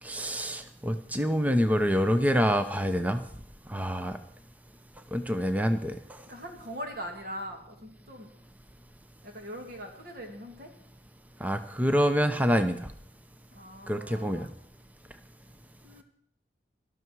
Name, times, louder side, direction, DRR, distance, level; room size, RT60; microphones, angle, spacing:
voice 1, 0.0-3.2 3.7-4.2 5.1-6.2 11.4-12.9 13.9-14.5, equal, 10° right, 8 dB, 0.7 m, -26 dB
voice 2, 6.3-8.3 9.2-10.7 13.5-14.6 15.8-16.0, equal, 50° right, 2 dB, 2.6 m, -41 dB
18.0 x 12.5 x 4.7 m, 0.66 s
head